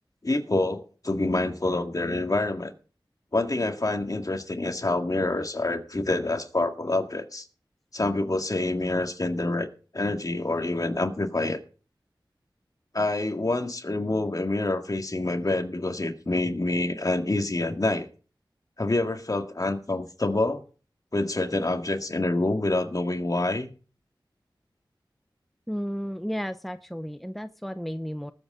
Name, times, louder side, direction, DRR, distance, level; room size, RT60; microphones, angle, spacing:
voice 1, 0.2-2.7 3.3-7.5 7.9-9.7 9.9-11.6 12.9-18.1 18.8-20.6 21.1-23.7, left 2 dB, 45° left, 6 dB, 1.9 m, -27 dB
voice 2, 25.7-28.3, equal, ahead, 10 dB, 0.7 m, -33 dB
19.5 x 7.8 x 3.8 m, 0.38 s
wide cardioid pair, 50°, 9 cm